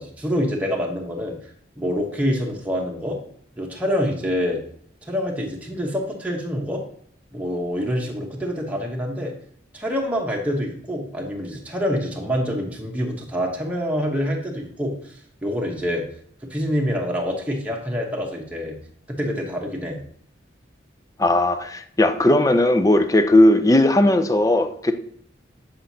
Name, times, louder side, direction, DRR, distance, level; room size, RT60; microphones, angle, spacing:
voice 1, 0.0-1.4 1.8-3.2 3.6-4.6 5.0-6.8 7.3-9.3 9.7-15.2 15.4-16.0 16.5-18.8 19.1-20.0, equal, 10° right, -1 dB, 1.0 m, -26 dB
voice 2, 21.2-24.9, left 1 dB, 20° left, 8 dB, 0.5 m, -17 dB
7.7 x 5.1 x 2.8 m, 0.64 s
head